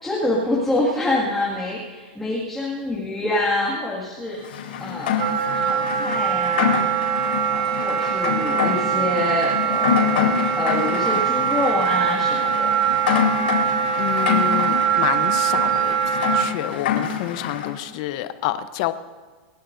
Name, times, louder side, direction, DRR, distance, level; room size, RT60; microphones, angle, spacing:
voice 1, 0.0-7.0 7.5-12.7, left 2 dB, 5° left, -7 dB, 2.0 m, -26 dB
Rain, 4.4-17.7, left 8 dB, 85° left, 4.2 m, -26 dB
Wind instrument woodwind instrument, 5.2-16.5, right 9 dB, 45° right, 3.4 m, -22 dB
voice 2, 13.6-18.9, left 14 dB, 40° left, 12 dB, 0.8 m, -29 dB
28.5 x 13.0 x 2.6 m, 1.5 s
supercardioid pair, 170°, 5 cm